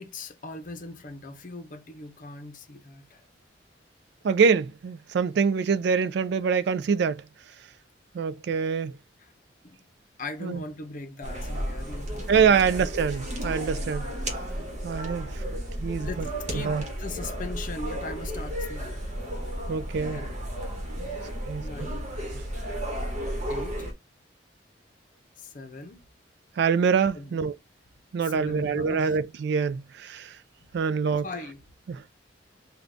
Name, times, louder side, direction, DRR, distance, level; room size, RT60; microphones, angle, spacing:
voice 1, 0.0-3.3 9.2-9.3 9.6-9.8 10.2-12.6 15.4-16.2 16.5-19.0 20.1-20.4 21.6-22.0 23.5-23.9 25.4-26.0 27.1-27.4 28.2-29.2 30.6-30.7 31.2-31.6, left 2 dB, 45° left, 0.7 m, -40 dB
voice 2, 4.2-7.2 8.1-9.0 10.4-10.6 12.3-14.0 14.8-15.4 15.8-16.3 16.5-16.8 19.7-20.2 21.5-21.7 26.6-27.5 28.1-30.4 30.7-31.2 31.9-32.0, right 6 dB, 65° right, 0.3 m, -25 dB
sound 1, 11.2-23.9, equal, 40° right, 1.1 m, -33 dB
3.8 x 2.3 x 3.4 m
head